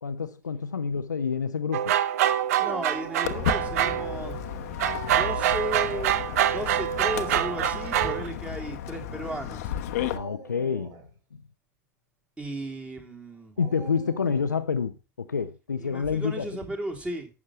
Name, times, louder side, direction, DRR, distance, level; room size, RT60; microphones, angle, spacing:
voice 1, 0.0-2.0 10.1-11.0 11.3-11.4 13.6-16.5, left 6 dB, 80° left, 0.7 m, -28 dB
sound 1, 1.7-4.4 4.8-8.3, right 11 dB, 60° right, 0.7 m, -26 dB
voice 2, 2.6-4.4 5.1-6.2 6.5-9.7 12.4-13.6 15.8-17.3, right 1 dB, 10° right, 3.2 m, -35 dB
Dog, 2.6-4.3 6.3-6.8 7.6-7.7 9.8-11.1 13.6-14.6, right 4 dB, 40° right, 3.4 m, -44 dB
Walk footsteps, 3.2-10.2, left 10 dB, 60° left, 1.0 m, -33 dB
12.0 x 8.4 x 3.1 m
figure-of-eight pair, 85°, 10 cm